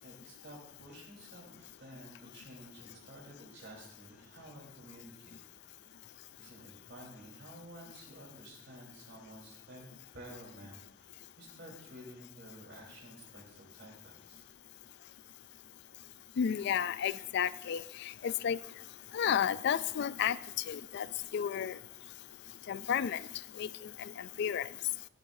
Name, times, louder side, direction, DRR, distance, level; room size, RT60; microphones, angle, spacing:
voice 1, 0.0-5.4 6.4-14.5, right 1 dB, 60° right, -2 dB, 4.0 m, -52 dB
voice 2, 16.4-18.6 19.1-20.4 20.7-21.1 21.3-21.8 22.7-23.3 23.6-24.7, left 8 dB, 60° left, 17 dB, 0.3 m, -32 dB
18.0 x 10.5 x 2.7 m, 0.78 s
head